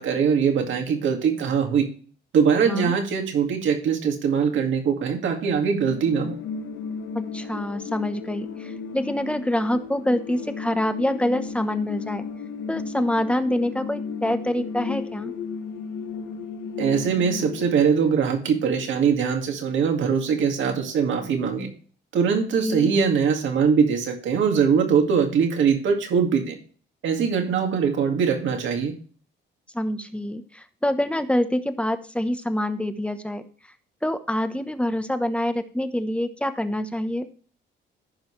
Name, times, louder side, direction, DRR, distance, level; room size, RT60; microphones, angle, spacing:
voice 1, 0.0-1.9 2.3-6.4 16.8-21.7 22.1-26.6 27.0-28.9, right 6 dB, 75° right, 3 dB, 2.2 m, -22 dB
sound 1, 5.8-17.7, left 5 dB, 75° left, 1.3 m, -34 dB
voice 2, 7.1-12.2 12.7-15.3 22.6-22.9 29.7-33.4 34.0-37.3, left 1 dB, 5° left, 9 dB, 1.0 m, -26 dB
15.0 x 5.5 x 3.2 m, 0.41 s
cardioid pair, 90°, 20 cm